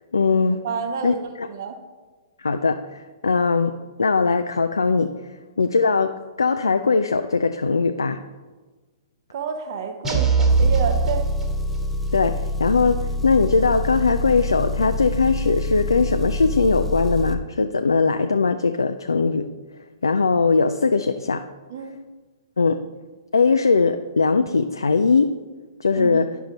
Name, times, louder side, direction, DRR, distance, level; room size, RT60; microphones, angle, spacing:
voice 1, 0.1-0.6 1.0-1.5 2.4-5.3 5.6-8.2 12.1-19.5 20.0-21.5 22.6-22.9 23.3-25.4 25.8-26.4, left 4 dB, 75° left, 8 dB, 0.3 m, -20 dB
voice 2, 0.6-1.8 9.3-11.3 21.7-22.0 26.0-26.2, right 6 dB, 50° right, 6 dB, 0.8 m, -29 dB
sound 1, 10.0-11.9, right 5 dB, 15° right, 1.3 m, -21 dB
Engine, 10.5-17.4, left 2 dB, 5° left, 0.5 m, -27 dB
10.0 x 5.5 x 3.9 m, 1.3 s
figure-of-eight pair, 110°, 2 cm